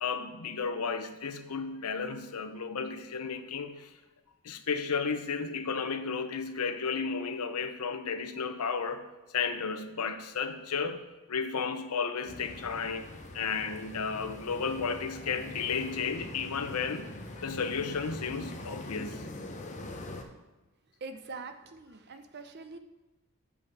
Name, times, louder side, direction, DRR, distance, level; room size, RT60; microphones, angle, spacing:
voice 1, 0.0-3.9 4.4-11.0 11.3-13.1 13.3-17.1 17.4-19.2, left 5 dB, 85° left, 9 dB, 0.7 m, -33 dB
sound 1, 12.3-20.2, left 2 dB, 35° left, 0.7 m, -43 dB
voice 2, 21.0-22.8, right 4 dB, 50° right, 8 dB, 0.6 m, -43 dB
7.7 x 5.6 x 4.7 m, 1.1 s
head